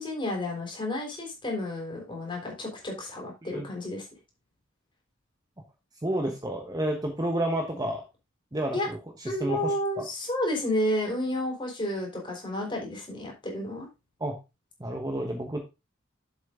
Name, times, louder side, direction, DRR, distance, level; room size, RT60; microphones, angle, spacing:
voice 1, 0.0-4.1 8.7-8.9 9.3-13.9, left 1 dB, 25° left, 0 dB, 3.6 m, -31 dB
voice 2, 6.0-8.0 8.5-9.0 9.2-10.0 14.2-14.3 14.8-15.6, right 1 dB, 20° right, 3 dB, 1.1 m, -30 dB
7.5 x 7.3 x 3.7 m, 0.26 s
head